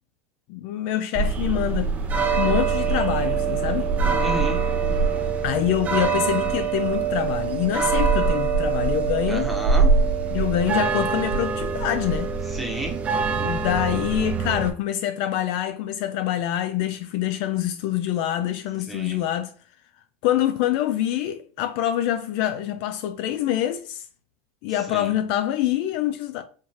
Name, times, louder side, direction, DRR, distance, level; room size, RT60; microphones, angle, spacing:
voice 1, 0.5-1.9 2.4-3.9 5.4-9.5 10.3-12.3 13.3-19.5 20.2-24.0 24.6-26.4, left 12 dB, 55° left, 0.4 m, -25 dB
sound 1, 1.2-14.7, right 5 dB, 20° right, 0.5 m, -23 dB
voice 2, 4.2-4.6 9.3-9.9 12.5-13.0 18.9-19.2 24.9-25.1, right 1 dB, ahead, 0.9 m, -31 dB
4.5 x 2.4 x 2.9 m
supercardioid pair, 140°, 7 cm